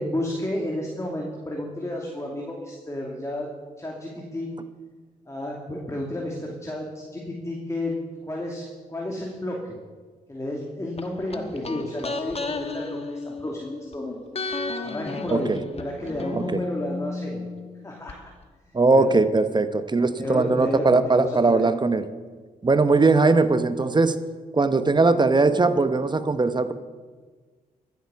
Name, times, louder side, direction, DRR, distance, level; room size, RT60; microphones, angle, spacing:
voice 1, 0.0-3.5 3.8-4.5 5.3-8.6 8.9-9.8 10.3-14.2 14.8-17.4 17.8-18.1 18.6-19.1 20.2-21.7, left 1 dB, 20° left, -1 dB, 2.6 m, -31 dB
sound 1, 11.0-13.9 14.3-18.2 18.4-18.5, left 3 dB, 40° left, 1.3 m, -33 dB
voice 2, 15.3-15.6 16.3-16.6 18.7-22.0 22.6-24.2 24.5-26.7, right 3 dB, 30° right, 11 dB, 0.9 m, -20 dB
14.0 x 9.4 x 7.1 m, 1.4 s
cardioid pair, 60°, 15 cm